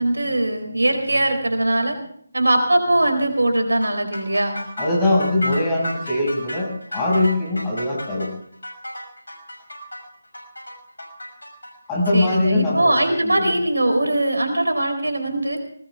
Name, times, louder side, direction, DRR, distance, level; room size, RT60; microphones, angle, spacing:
voice 1, 0.0-2.0 2.3-4.6 12.1-15.6, right 1 dB, 75° right, 5 dB, 4.2 m, -21 dB
sound 1, 3.8-12.4, equal, 80° left, 5.9 m, -33 dB
voice 2, 4.8-8.3 11.9-13.5, left 2 dB, 15° left, -3 dB, 6.2 m, -22 dB
21.0 x 19.0 x 3.5 m, 0.65 s
figure-of-eight pair, 155°, 0 cm